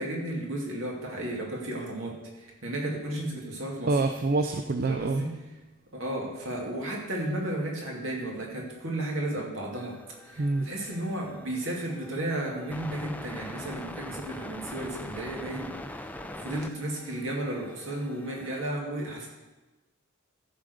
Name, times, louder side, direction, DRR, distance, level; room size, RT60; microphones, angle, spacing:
voice 1, 0.0-3.9 4.9-5.3 5.9-10.0 10.2-19.3, right 1 dB, 65° right, -1 dB, 2.5 m, -33 dB
voice 2, 3.9-5.2 10.4-10.7, right 3 dB, 45° right, 7 dB, 0.5 m, -26 dB
sound 1, 9.7-18.7, left 1 dB, 10° left, 0.5 m, -43 dB
14.0 x 5.0 x 6.4 m, 1.1 s
head